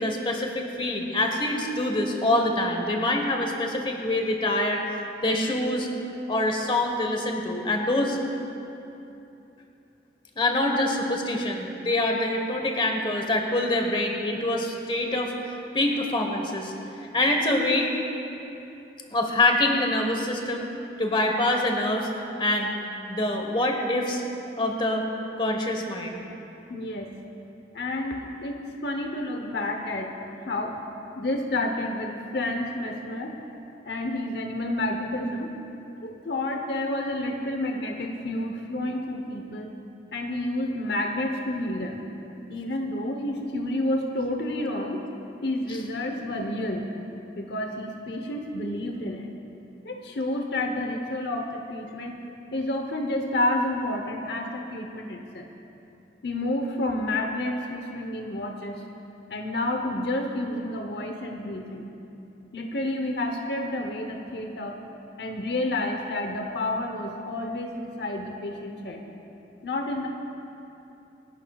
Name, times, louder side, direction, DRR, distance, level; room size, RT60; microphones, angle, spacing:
voice 1, 0.0-4.8 5.2-5.9 6.3-8.2 10.4-15.3 15.7-16.7 17.1-17.9 19.1-20.7 21.0-22.1 22.4-22.7 23.1-24.2 24.6-25.0 25.4-26.2, left 1 dB, 25° left, 2 dB, 1.2 m, -25 dB
voice 2, 26.7-27.1 27.7-30.8 31.1-33.3 33.8-35.5 36.0-39.7 40.1-42.0 42.5-45.0 45.4-46.9 47.4-49.3 49.8-52.2 52.5-55.5 56.2-58.8 59.3-61.9 62.5-64.8 65.2-69.0 69.6-70.1, left 1 dB, 60° left, 2 dB, 0.9 m, -30 dB
27.5 x 11.0 x 2.4 m, 2.9 s
head